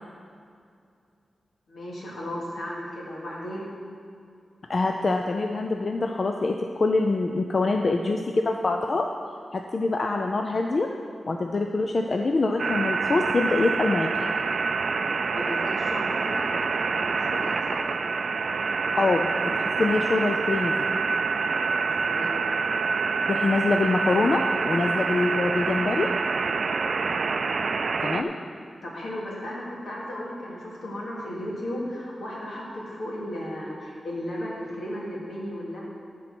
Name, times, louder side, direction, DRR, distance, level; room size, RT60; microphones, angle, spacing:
voice 1, 1.7-3.7 15.3-18.0 21.7-22.4 28.8-35.8, left 1 dB, 75° left, -5 dB, 2.5 m, -35 dB
voice 2, 4.7-9.1 9.5-10.9 11.3-14.3 19.0-20.7 23.3-26.1 28.0-28.3, left 3 dB, 45° left, 3 dB, 0.5 m, -25 dB
sound 1, 12.6-28.2, right 4 dB, 60° right, 0.4 m, -26 dB
13.5 x 4.6 x 6.1 m, 2.4 s
wide cardioid pair, 125°, 0 cm